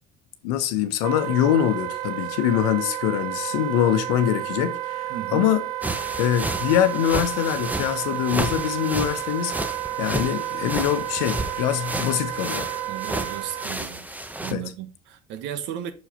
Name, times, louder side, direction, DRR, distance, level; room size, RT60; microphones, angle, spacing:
voice 1, 0.4-5.6 6.2-12.7 14.5-14.6, left 11 dB, 80° left, 1.0 m, -24 dB
Wind instrument woodwind instrument, 1.0-13.7, right 14 dB, 85° right, 0.4 m, -31 dB
voice 2, 5.1-5.5 12.9-14.1 14.4-15.9, right 10 dB, 70° right, 1.2 m, -35 dB
sound 1, 5.8-14.5, right 1 dB, 10° right, 0.9 m, -32 dB
6.4 x 4.9 x 5.0 m
supercardioid pair, 80°, 20 cm